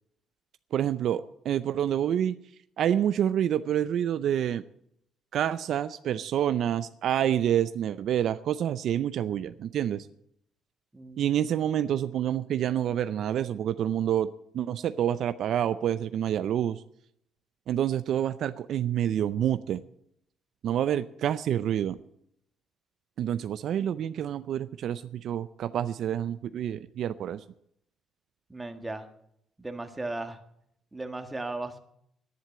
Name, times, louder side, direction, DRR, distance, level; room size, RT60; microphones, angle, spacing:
voice 1, 0.7-2.4 2.8-4.6 5.3-10.1 11.2-16.8 17.7-19.8 20.6-22.0 23.2-27.4, right 10 dB, 65° right, 12 dB, 0.5 m, -28 dB
voice 2, 10.9-11.2 28.5-29.1 29.6-30.4 30.9-31.8, right 2 dB, 15° right, 6 dB, 1.6 m, -36 dB
11.0 x 10.5 x 8.6 m, 0.73 s
cardioid pair, 105°, 0 cm